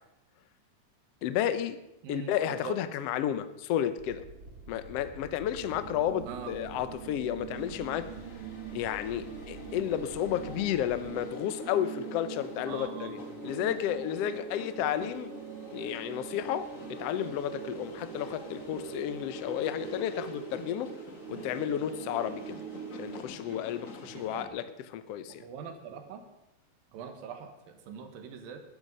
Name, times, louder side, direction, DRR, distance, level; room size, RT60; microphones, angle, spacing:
voice 1, 1.2-1.8 2.1-4.2 4.7-8.1 8.7-13.2 13.4-15.4 15.7-16.7 17.0-21.0 21.3-22.6 22.9-25.4, left 10 dB, 75° left, 11 dB, 1.4 m, -32 dB
voice 2, 2.0-2.8 6.3-6.6 12.7-13.4 21.3-21.8 23.5-23.6 24.1-24.5 25.3-26.3 26.9-28.6, right 7 dB, 90° right, 6 dB, 3.3 m, -43 dB
sound 1, 4.0-11.1, right 3 dB, 50° right, 3.0 m, -49 dB
sound 2, 5.6-23.2, right 7 dB, 70° right, 1.3 m, -43 dB
sound 3, 7.5-24.5, left 2 dB, 40° left, 1.1 m, -47 dB
20.0 x 11.0 x 5.5 m, 0.88 s
omnidirectional pair, 4.0 m